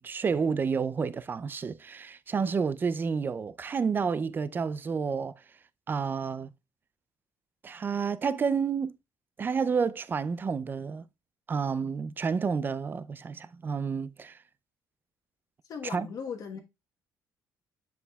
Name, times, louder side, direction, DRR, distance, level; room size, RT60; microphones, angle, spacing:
voice 1, 0.0-5.3 5.9-6.5 7.6-9.0 9.4-11.0 11.5-14.4 15.8-16.1, right 5 dB, 25° right, 0.4 m, -30 dB
voice 2, 15.7-16.6, left 6 dB, 55° left, 1.2 m, -37 dB
7.2 x 6.9 x 2.3 m
cardioid pair, 115°, 8 cm